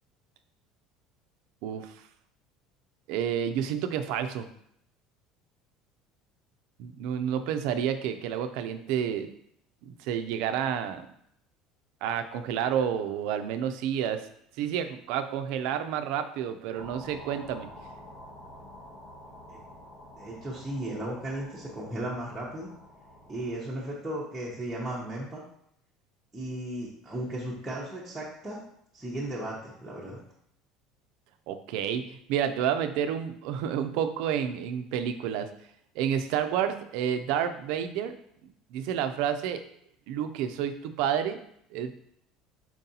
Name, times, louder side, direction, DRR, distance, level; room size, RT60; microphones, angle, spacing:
voice 1, 1.6-1.9 3.1-4.5 6.8-9.3 9.8-11.1 12.0-14.3 14.6-17.7 31.5-35.5 36.0-38.1 38.7-39.6 40.1-41.4 41.7-41.9, right 9 dB, 65° right, 9 dB, 0.4 m, -30 dB
sound 1, 16.8-23.6, left 1 dB, 75° left, 1.5 m, -48 dB
voice 2, 20.2-22.7 23.3-25.4 26.3-28.6 28.9-30.2, right 1 dB, 5° right, -7 dB, 0.7 m, -35 dB
4.5 x 3.9 x 2.7 m, 0.70 s
cardioid pair, 165°, 0 cm